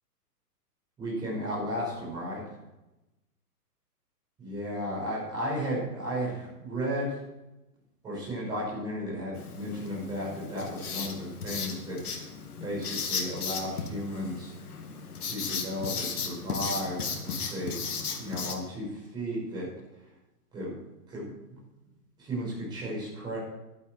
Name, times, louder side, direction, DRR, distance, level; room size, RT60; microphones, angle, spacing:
voice 1, 1.0-2.4 4.4-7.2 8.0-12.0 12.6-14.5 15.2-17.8 18.2-19.7 20.5-20.8 21.1-21.6 22.2-23.4, equal, 10° right, -6 dB, 5.8 m, -34 dB
Writing, 9.3-18.5, left 5 dB, 70° left, 2.7 m, -35 dB
15.0 x 13.0 x 4.6 m, 0.97 s
hypercardioid pair, 175°, 47 cm